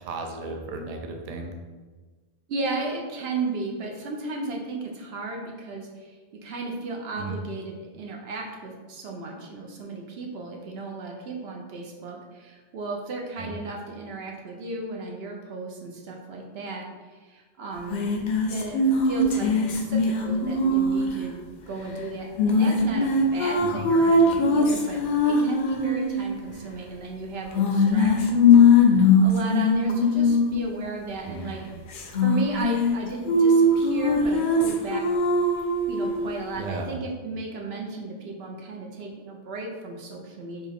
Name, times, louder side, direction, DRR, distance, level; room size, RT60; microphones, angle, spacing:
voice 1, 0.0-1.5 7.2-7.4 13.4-13.5 23.6-23.9 31.3-31.8 36.6-37.0, right 2 dB, 55° right, 3 dB, 0.4 m, -35 dB
voice 2, 2.5-16.8 17.1-18.1 18.5-21.4 21.7-25.0 25.2-31.6 32.2-35.0 35.9-40.7, right 3 dB, 70° right, 0 dB, 0.9 m, -34 dB
sound 1, 17.9-21.2 22.4-26.2 27.5-30.6 31.9-32.9 33.3-36.2, left 3 dB, 60° left, 0.6 m, -20 dB
4.4 x 2.3 x 3.5 m, 1.3 s
omnidirectional pair, 1.1 m